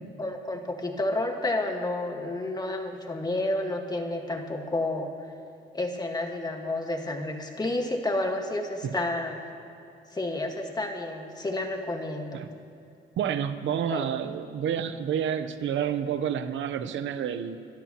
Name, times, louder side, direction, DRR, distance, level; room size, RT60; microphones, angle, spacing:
voice 1, 0.2-5.1 5.7-9.4 10.1-12.4 13.9-14.0, left 2 dB, 20° left, 3 dB, 1.7 m, -30 dB
voice 2, 13.2-17.6, right 8 dB, 70° right, 10 dB, 0.9 m, -29 dB
27.0 x 12.5 x 3.0 m, 2.7 s
cardioid pair, 90°, 20 cm